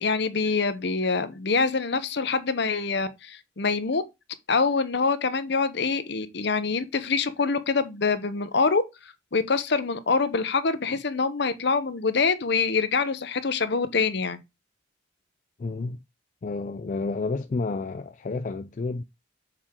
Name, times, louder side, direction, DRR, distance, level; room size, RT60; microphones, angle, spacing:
voice 1, 0.0-4.0 4.5-8.8 9.3-14.4, left 4 dB, 60° left, 0.8 m, -25 dB
voice 2, 15.6-16.0 16.4-19.0, left 3 dB, 40° left, 0.4 m, -30 dB
6.6 x 4.4 x 3.7 m
head